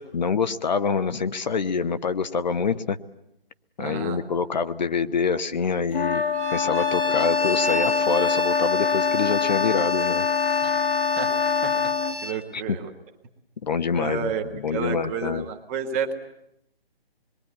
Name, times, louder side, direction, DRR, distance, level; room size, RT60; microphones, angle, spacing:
voice 1, 0.1-3.0 3.8-6.2 6.5-10.2 12.5-12.8 13.6-15.5, left 5 dB, 45° left, 10 dB, 1.0 m, -26 dB
voice 2, 3.8-4.2 10.6-10.8 11.2-11.3 11.6-11.9 12.2-12.9 13.9-16.1, right 6 dB, 15° right, 5 dB, 1.2 m, -30 dB
sound 1, 5.9-12.2, left 5 dB, 75° left, 1.7 m, -24 dB
Bowed string instrument, 6.3-12.4, left 1 dB, ahead, 1.7 m, -33 dB
26.0 x 22.5 x 9.6 m, 0.81 s
hypercardioid pair, 165°, 30 cm